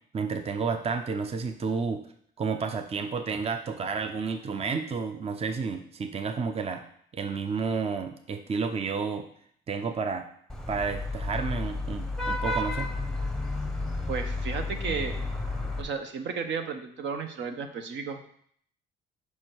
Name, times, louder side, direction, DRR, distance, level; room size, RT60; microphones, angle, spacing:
voice 1, 0.1-2.0 2.4-6.8 7.1-9.3 9.7-10.3 10.7-12.9, right 5 dB, 30° right, 6 dB, 0.5 m, -31 dB
Vehicle horn car horn honking / Traffic noise roadway noise, 10.5-15.8, left 2 dB, ahead, 0.8 m, -31 dB
voice 2, 14.1-15.1 15.8-18.3, right 5 dB, 65° right, 6 dB, 0.8 m, -33 dB
5.5 x 4.8 x 4.5 m, 0.63 s
cardioid pair, 90°, 20 cm